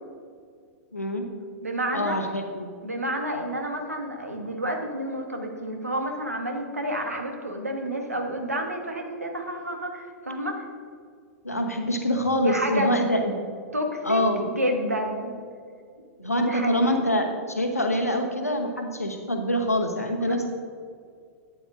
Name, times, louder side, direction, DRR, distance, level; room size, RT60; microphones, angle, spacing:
voice 1, 0.9-1.3 1.9-2.7 11.4-13.3 14.0-14.5 16.2-20.5, equal, 85° left, 4 dB, 1.0 m, -25 dB
voice 2, 1.6-2.2 2.8-10.7 12.3-12.9 13.7-15.3 16.2-16.8 20.2-20.5, right 1 dB, 80° right, 3 dB, 1.2 m, -30 dB
12.0 x 9.1 x 2.5 m, 2.1 s
figure-of-eight pair, 100°, 8 cm